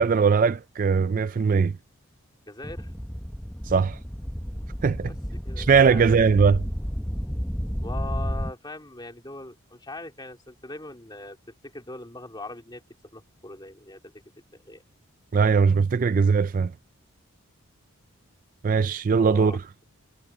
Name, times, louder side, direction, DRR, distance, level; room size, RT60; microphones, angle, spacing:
voice 1, 0.0-1.7 3.6-4.0 4.8-5.1 5.6-6.7 15.3-16.7 18.6-19.5, right 5 dB, 35° right, 0.3 m, -20 dB
voice 2, 2.5-2.9 3.7-3.8 5.1-5.2 5.4-6.2 7.8-11.4 11.6-12.8 13.1-14.1 14.6-14.8 19.2-19.8, left 2 dB, 20° left, 3.5 m, -40 dB
sound 1, 2.6-8.5, equal, 5° left, 0.7 m, -31 dB
head